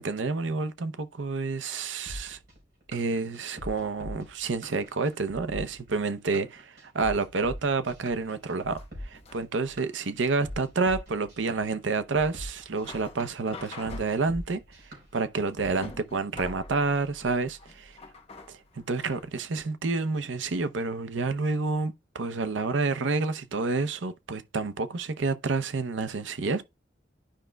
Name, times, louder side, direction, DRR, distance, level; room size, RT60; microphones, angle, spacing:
voice 1, 0.0-2.4 2.9-14.6 15.1-18.0 18.5-18.6 18.9-26.7, right 3 dB, 85° right, 0.7 m, -29 dB
sound 1, 2.1-15.7, equal, 55° right, 4.0 m, -42 dB
sound 2, 7.7-19.3, left 2 dB, 35° left, 1.1 m, -47 dB
11.5 x 4.9 x 2.3 m
head